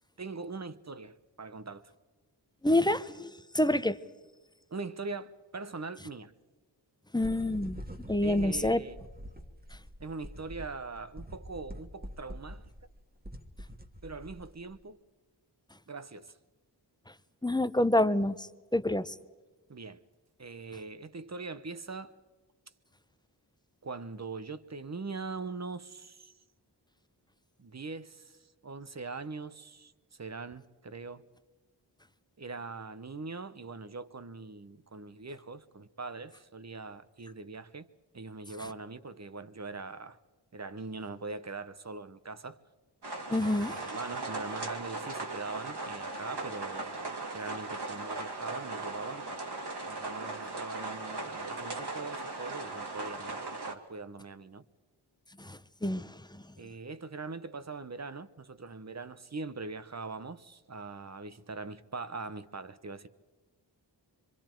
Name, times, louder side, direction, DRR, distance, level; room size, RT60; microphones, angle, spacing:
voice 1, 0.2-1.9 4.7-6.3 8.2-9.0 10.0-12.6 14.0-15.0 15.9-16.3 19.7-20.0 20.4-22.1 23.8-26.3 27.6-31.2 32.4-37.9 38.1-40.2 40.5-42.6 43.7-47.1 47.3-53.4 53.6-54.6 56.6-63.1, right 3 dB, 40° right, 0.9 m, -42 dB
voice 2, 2.6-4.0 7.1-7.8 8.1-8.8 17.1-17.2 17.4-19.2 43.3-43.9 55.4-56.5, left 1 dB, 10° left, 0.6 m, -28 dB
sound 1, 7.2-14.8, equal, 20° right, 1.5 m, -45 dB
sound 2, 43.0-53.7, right 3 dB, 65° right, 2.1 m, -38 dB
25.5 x 24.5 x 4.5 m
wide cardioid pair, 65°, 43 cm